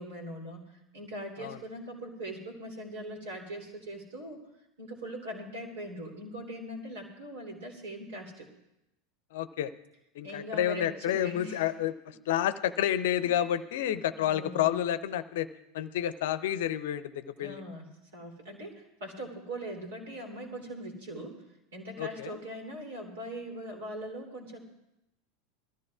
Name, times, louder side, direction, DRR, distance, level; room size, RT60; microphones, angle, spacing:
voice 1, 0.0-4.4 4.8-8.5 10.2-11.6 13.2-13.3 14.2-14.7 17.4-21.4 21.7-24.6, right 1 dB, 70° right, 2 dB, 3.1 m, -41 dB
voice 2, 9.3-9.7 10.2-15.5 15.7-17.6 22.0-22.4, left 11 dB, 60° left, 14 dB, 0.6 m, -30 dB
22.0 x 14.0 x 2.5 m, 0.87 s
figure-of-eight pair, 80°, 0 cm